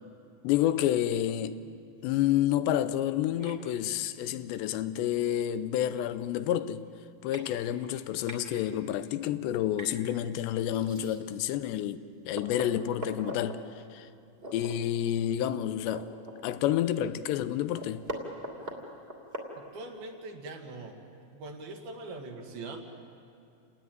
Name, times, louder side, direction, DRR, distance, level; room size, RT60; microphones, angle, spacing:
voice 1, 0.4-1.6 2.0-6.8 7.2-12.0 12.2-13.6 13.9-14.1 14.5-16.1 16.4-18.0, left 11 dB, 90° left, 3.0 m, -29 dB
sound 1, 3.4-3.6 5.0-5.1 5.7-5.8 6.0-6.3 6.9-7.0 7.3-7.5 7.9-8.4 9.7-10.0 10.7-11.4 11.9-12.0 12.3-13.6 14.4-14.7 15.1-15.2 15.6-16.7 17.1-17.2 17.5-20.0, right 1 dB, 20° right, 2.3 m, -41 dB
voice 2, 19.6-21.0 21.3-22.9, right 2 dB, 65° right, 3.7 m, -42 dB
29.5 x 19.0 x 9.3 m
omnidirectional pair, 4.9 m